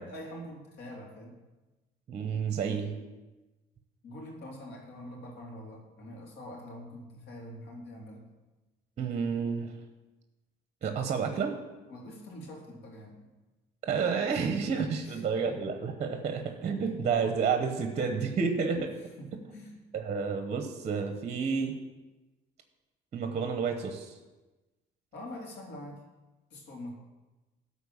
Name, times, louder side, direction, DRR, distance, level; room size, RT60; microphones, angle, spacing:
voice 1, 0.0-1.4 4.0-8.3 11.9-13.3 14.3-15.2 15.5-15.6 16.8-17.0 18.6-18.9 19.2-19.8 25.1-26.0 26.5-26.9, left 1 dB, 75° left, -1 dB, 2.9 m, -45 dB
voice 2, 2.1-3.0 9.0-9.8 10.8-11.6 13.8-18.9 19.9-21.8 23.1-24.2, right 5 dB, 40° right, 6 dB, 1.0 m, -30 dB
12.0 x 4.2 x 7.2 m, 1.1 s
cardioid pair, 110°, 17 cm